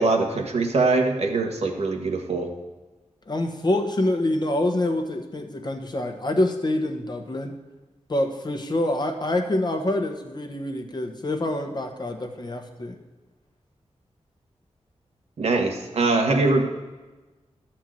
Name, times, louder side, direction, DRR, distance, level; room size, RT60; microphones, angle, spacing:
voice 1, 0.0-2.5 15.4-16.6, right 3 dB, 65° right, 3 dB, 1.4 m, -22 dB
voice 2, 3.3-7.5 8.1-13.0, left 1 dB, 40° left, 4 dB, 1.2 m, -26 dB
12.0 x 4.5 x 7.6 m, 1.2 s
wide cardioid pair, 75°, 11 cm